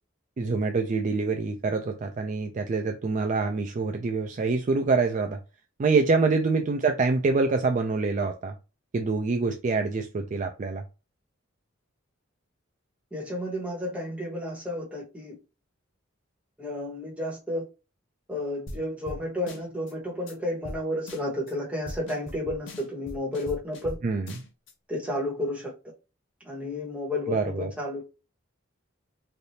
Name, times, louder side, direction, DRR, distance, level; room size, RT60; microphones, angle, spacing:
voice 1, 0.4-5.4 5.8-8.6 8.9-10.8 24.0-24.3 27.3-27.7, right 4 dB, 40° right, 0.3 m, -25 dB
voice 2, 13.1-15.4 16.6-17.6 18.3-24.0 24.9-25.7 26.4-28.1, left 1 dB, 5° right, 1.3 m, -32 dB
sound 1, 18.7-18.8 19.1-19.2 19.5-19.9 20.3-20.4 20.6-20.8 21.1-21.5 21.9-24.0 24.3-24.7, left 1 dB, 65° left, 0.6 m, -40 dB
3.3 x 2.5 x 2.8 m
head